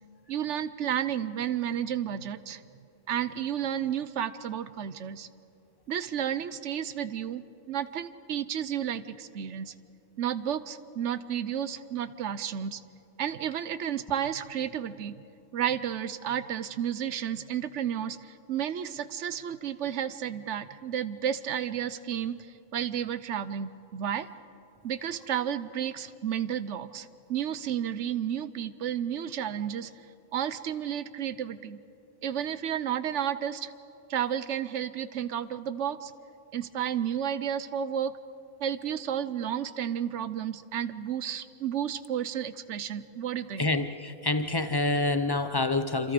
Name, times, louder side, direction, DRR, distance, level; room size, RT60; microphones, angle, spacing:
voice 1, 0.3-2.6 3.1-5.3 5.9-9.7 10.2-12.8 13.2-15.2 15.5-24.3 24.8-29.9 30.3-31.8 32.2-33.7 34.1-36.1 36.5-38.1 38.6-43.7, right 9 dB, 65° right, 14 dB, 1.0 m, -32 dB
voice 2, 43.6-46.1, left 2 dB, 25° left, 10 dB, 0.5 m, -27 dB
27.5 x 26.5 x 5.1 m, 2.7 s
omnidirectional pair, 1.4 m